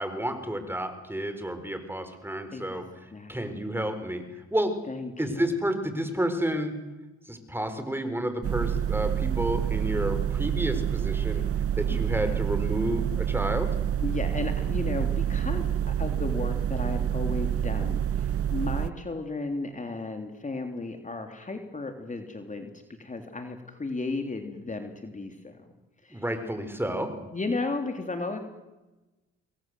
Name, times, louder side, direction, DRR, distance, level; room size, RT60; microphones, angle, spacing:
voice 1, 0.0-2.8 3.3-4.2 4.5-4.7 5.2-6.7 7.3-11.4 11.8-13.7 26.1-27.1, right 1 dB, 5° right, 8 dB, 4.6 m, -30 dB
voice 2, 2.5-2.8 3.1-3.4 4.9-5.5 11.2-11.5 11.9-12.4 14.0-22.7 23.0-25.7 26.0-26.2 27.3-28.4, left 3 dB, 25° left, 5 dB, 3.2 m, -34 dB
sound 1, 8.4-18.9, right 9 dB, 50° right, 0.9 m, -27 dB
27.5 x 21.5 x 7.9 m, 1.1 s
cardioid pair, 90°, 30 cm